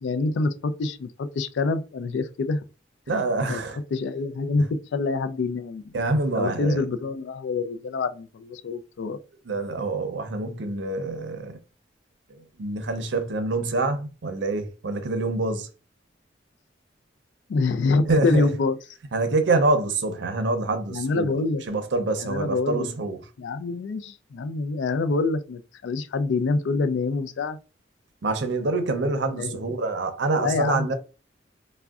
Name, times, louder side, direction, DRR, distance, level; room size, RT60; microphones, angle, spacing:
voice 1, 0.0-2.6 3.1-3.6 3.9-5.9 6.4-9.2 17.5-18.8 20.9-21.6 22.2-22.9 23.4-27.6 29.3-29.6 30.4-30.9, left 3 dB, 75° left, 0.3 m, -26 dB
voice 2, 3.1-3.8 5.9-6.8 9.4-11.6 12.3-15.7 18.0-18.5 19.1-21.3 21.7-23.2 28.2-30.9, right 3 dB, 75° right, 0.6 m, -26 dB
3.5 x 2.1 x 2.3 m
head